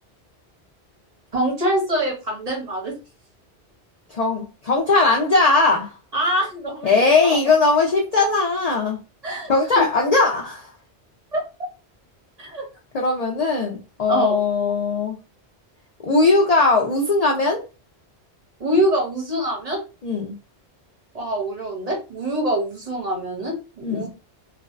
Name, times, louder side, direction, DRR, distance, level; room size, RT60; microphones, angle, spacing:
voice 1, 1.3-3.0 6.1-6.9 7.2-7.5 9.2-9.8 11.3-11.4 12.4-12.6 14.1-14.4 18.6-19.8 21.1-24.1, right 1 dB, 40° right, 0 dB, 0.7 m, -24 dB
voice 2, 4.1-5.9 6.8-9.0 9.5-10.7 12.9-15.2 16.0-17.6 20.0-20.3 23.8-24.1, left 3 dB, 60° left, 0 dB, 0.4 m, -19 dB
2.5 x 2.1 x 2.4 m, 0.30 s
omnidirectional pair, 1.2 m